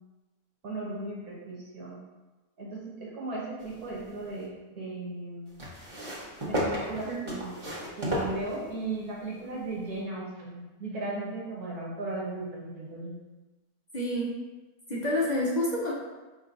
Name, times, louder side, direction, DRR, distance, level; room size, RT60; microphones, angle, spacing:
voice 1, 0.6-2.0 2.6-5.5 6.4-7.5 8.0-13.1, right 2 dB, 75° right, -5 dB, 1.6 m, -36 dB
sound 1, 3.6-4.5 5.6-9.0 9.9-10.0, equal, 25° right, 0.8 m, -34 dB
voice 2, 13.9-14.4 14.9-15.9, left 1 dB, 45° left, -5 dB, 0.5 m, -28 dB
5.2 x 3.6 x 2.5 m, 1.2 s
omnidirectional pair, 1.6 m